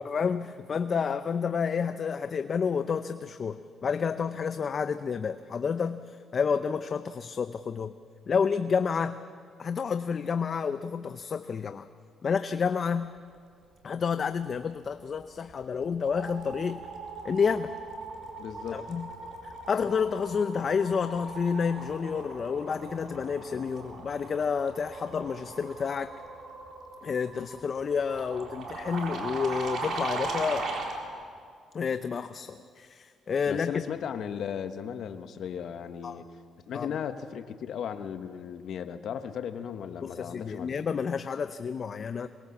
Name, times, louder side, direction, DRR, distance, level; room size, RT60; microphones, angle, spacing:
voice 1, 0.0-7.9 8.3-9.2 9.6-11.9 12.2-13.1 13.8-16.9 17.2-17.7 18.7-19.1 19.4-26.1 27.0-30.7 31.7-33.7 36.0-36.2 36.7-36.9 40.0-42.3, left 6 dB, 45° left, 10 dB, 0.7 m, -30 dB
sound 1, 15.2-15.5 15.8-31.0, right 2 dB, 65° right, 4.2 m, -39 dB
voice 2, 18.4-18.8 33.5-36.3 36.7-40.8, left 8 dB, 70° left, 9 dB, 1.2 m, -36 dB
22.5 x 21.0 x 7.3 m, 2.1 s
cardioid pair, 90°, 0 cm